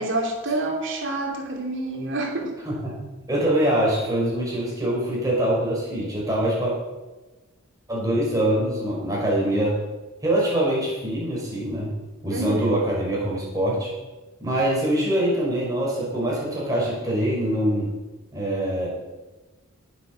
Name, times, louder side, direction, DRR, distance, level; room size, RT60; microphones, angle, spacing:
voice 1, 0.0-2.5 12.3-12.8, right 2 dB, 60° right, 0 dB, 3.1 m, -27 dB
voice 2, 2.7-3.0 3.3-6.7 7.9-9.8 10.2-11.9 12.2-13.9 14.4-17.9 18.3-18.9, right 1 dB, 15° right, -4 dB, 5.3 m, -24 dB
16.5 x 7.7 x 6.5 m, 1.2 s
head